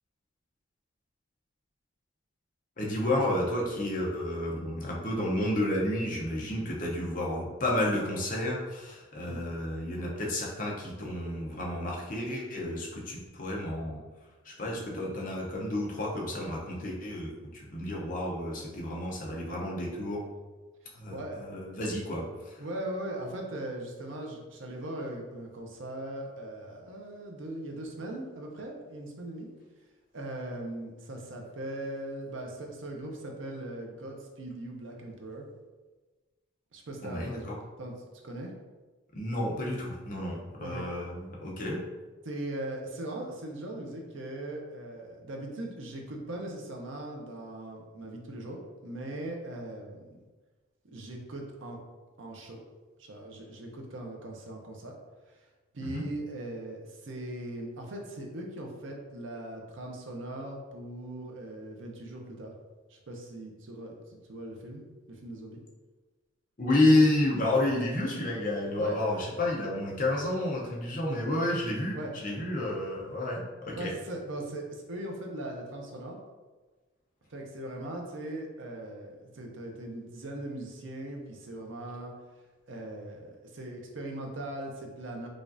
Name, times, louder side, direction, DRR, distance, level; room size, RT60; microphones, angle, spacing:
voice 1, 2.8-14.0 14.4-20.2 20.9-22.5 37.0-37.6 39.1-41.8 55.9-56.0 66.6-73.9, left 1 dB, 40° left, -2 dB, 0.7 m, -30 dB
voice 2, 21.1-21.6 22.6-29.5 30.1-35.5 36.7-37.5 37.8-37.9 38.2-38.5 40.6-40.9 42.2-50.2 50.8-51.8 52.2-52.6 53.0-55.0 55.3-55.4 55.7-62.5 62.9-65.6 68.8-69.0 71.9-72.1 73.8-76.2 77.3-82.1 82.7-85.3, right 1 dB, 70° right, 1 dB, 0.6 m, -39 dB
5.0 x 2.4 x 2.6 m, 1.3 s
head